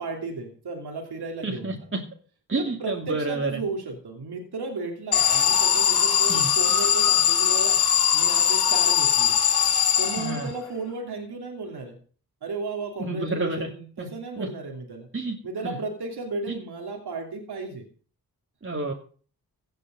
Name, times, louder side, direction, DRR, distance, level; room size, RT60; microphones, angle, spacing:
voice 1, 0.0-1.8 2.8-7.8 8.1-9.4 10.0-12.0 12.4-15.1 15.4-17.8, right 3 dB, 85° right, 2 dB, 2.9 m, -34 dB
voice 2, 1.4-2.0 2.5-3.6 6.3-6.5 10.2-10.5 13.0-13.7 14.0-14.1 14.4-14.5 15.1-15.4 15.6-15.8 18.6-18.9, right 2 dB, 30° right, 0 dB, 2.6 m, -29 dB
Alarm, 5.1-10.7, left 9 dB, 75° left, 2.5 m, -21 dB
16.5 x 6.9 x 7.6 m, 0.42 s
cardioid pair, 50°, 38 cm